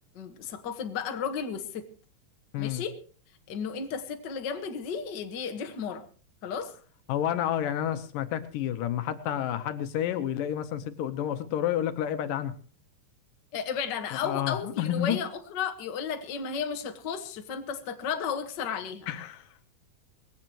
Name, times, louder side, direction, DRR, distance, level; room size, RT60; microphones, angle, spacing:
voice 1, 0.1-1.9 2.6-3.0 3.5-6.0 6.4-6.7 13.5-19.1, left 6 dB, 45° left, 6 dB, 1.5 m, -33 dB
voice 2, 7.1-12.6 14.1-15.2 19.1-19.4, left 11 dB, 75° left, 10 dB, 2.6 m, -30 dB
20.5 x 17.0 x 3.0 m, 0.39 s
omnidirectional pair, 3.9 m